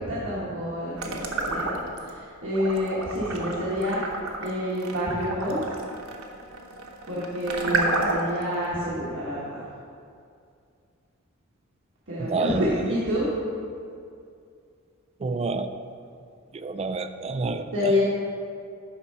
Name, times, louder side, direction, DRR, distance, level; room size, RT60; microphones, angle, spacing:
voice 1, 0.1-4.0 4.4-5.6 7.0-9.7 12.1-13.3 17.7-18.0, left 1 dB, 65° right, -9 dB, 1.3 m, -28 dB
sound 1, 1.0-2.1 2.5-8.4, right 2 dB, 80° right, 0.8 m, -30 dB
voice 2, 12.2-12.8 15.2-15.7 16.5-17.9, right 4 dB, 30° right, 9 dB, 0.3 m, -29 dB
9.5 x 3.6 x 5.4 m, 2.4 s
head